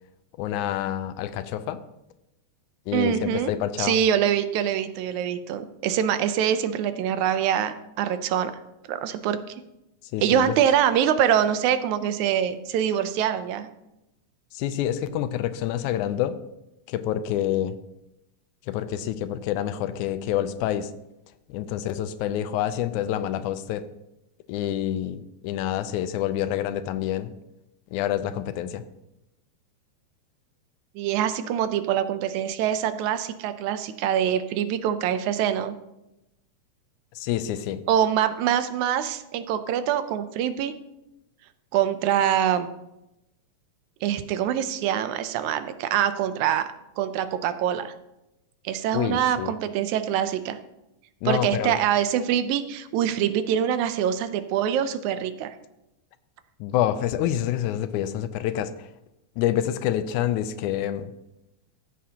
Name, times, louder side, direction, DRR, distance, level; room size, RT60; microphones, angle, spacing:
voice 1, 0.4-1.8 2.9-4.0 10.1-10.6 14.5-16.4 16.9-17.8 18.7-20.9 21.5-23.9 24.5-27.3 27.9-28.8 37.2-37.8 48.9-49.5 51.2-51.8 56.6-58.9 59.4-61.1, left 11 dB, 85° left, 12 dB, 2.0 m, -27 dB
voice 2, 2.9-3.5 3.8-8.5 8.9-9.4 10.2-13.7 31.0-35.8 37.9-40.7 41.7-42.7 44.0-46.7 47.0-47.9 48.7-50.6 51.3-55.5, right 9 dB, 80° right, 11 dB, 2.0 m, -24 dB
14.5 x 7.5 x 2.8 m, 0.91 s
omnidirectional pair, 3.4 m